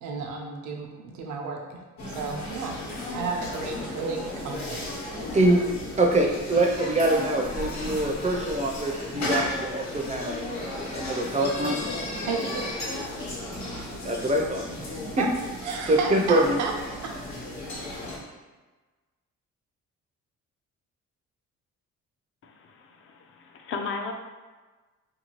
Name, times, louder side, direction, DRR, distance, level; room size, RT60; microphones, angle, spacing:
voice 1, 0.0-2.8 3.1-4.9 12.3-12.7 15.2-15.3 15.6-16.7 17.0-17.1, right 4 dB, 75° right, 1 dB, 0.6 m, -32 dB
sound 1, 2.0-18.2, left 1 dB, 65° left, 1.0 m, -34 dB
voice 2, 6.0-10.3 10.6-11.8 14.0-14.6 15.9-16.6, right 1 dB, 25° right, 1 dB, 0.5 m, -24 dB
voice 3, 22.4-24.1, left 4 dB, 45° left, 4 dB, 0.4 m, -36 dB
2.7 x 2.3 x 2.9 m, 1.3 s
cardioid pair, 90°, 30 cm